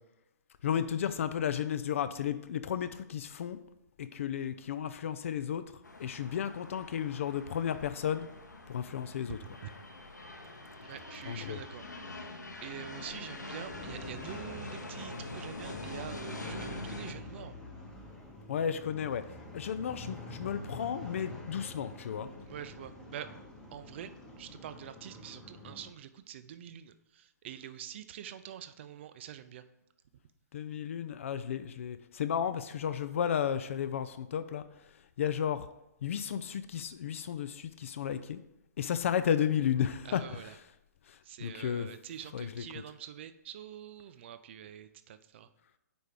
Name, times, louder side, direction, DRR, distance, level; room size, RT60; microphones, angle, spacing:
voice 1, 0.6-3.6 4.0-5.6 6.0-8.3 8.7-9.4 11.3-11.6 18.5-19.2 19.5-22.3 30.5-34.6 35.2-35.7 36.0-38.4 38.8-40.5 41.1-41.9 42.3-42.6, left 8 dB, 45° left, 12 dB, 0.4 m, -33 dB
sound 1, 5.8-17.1, left 2 dB, 80° left, 0.8 m, -44 dB
voice 2, 9.3-9.7 10.8-17.5 22.5-23.3 23.7-29.6 40.0-40.5 41.2-45.5, right 10 dB, 40° right, 11 dB, 0.4 m, -46 dB
sound 2, 13.7-25.9, left 1 dB, 5° left, 0.9 m, -47 dB
5.1 x 4.5 x 4.8 m, 0.88 s
figure-of-eight pair, 125°, 10 cm